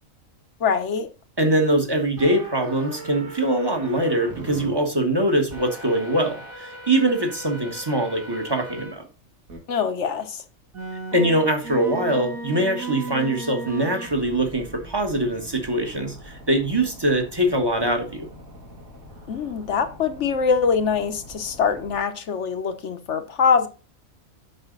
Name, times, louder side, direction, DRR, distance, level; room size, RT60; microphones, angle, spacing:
voice 1, 0.6-1.1 9.7-10.4 19.3-23.7, left 6 dB, 60° left, 1.2 m, -23 dB
voice 2, 1.4-9.0 11.1-18.3, right 1 dB, 20° right, 1.4 m, -23 dB
sound 1, 2.2-4.7 5.5-8.9 9.5-9.6 10.7-22.0, right 1 dB, 85° right, 2.6 m, -39 dB
8.2 x 6.0 x 3.9 m
omnidirectional pair, 1.4 m